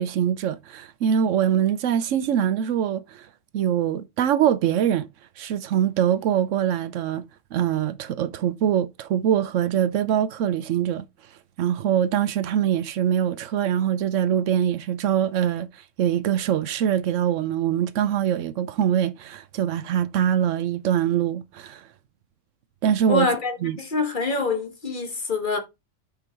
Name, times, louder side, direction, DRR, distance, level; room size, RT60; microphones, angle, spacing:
voice 1, 0.0-3.3 3.5-5.1 5.4-7.2 7.5-11.0 11.6-15.7 16.0-21.8 22.8-23.3 23.6-23.8, right 9 dB, 75° right, 1.0 m, -23 dB
voice 2, 23.1-25.6, left 4 dB, 40° left, 1.3 m, -25 dB
5.3 x 4.8 x 4.3 m
omnidirectional pair, 1.3 m